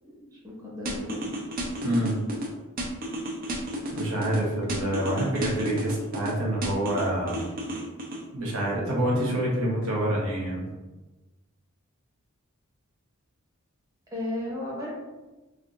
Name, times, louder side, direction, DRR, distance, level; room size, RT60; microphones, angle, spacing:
voice 1, 0.0-1.4 5.6-5.8 9.5-9.8 14.1-14.9, left 1 dB, 15° right, -5 dB, 0.9 m, -35 dB
sound 1, 0.9-2.5 2.8-4.4 4.7-6.3 6.6-8.2, equal, 40° right, 0.5 m, -32 dB
voice 2, 1.8-2.2 3.9-7.4 8.3-10.6, right 1 dB, 65° right, -3 dB, 0.9 m, -27 dB
3.4 x 2.5 x 2.4 m, 1.1 s
head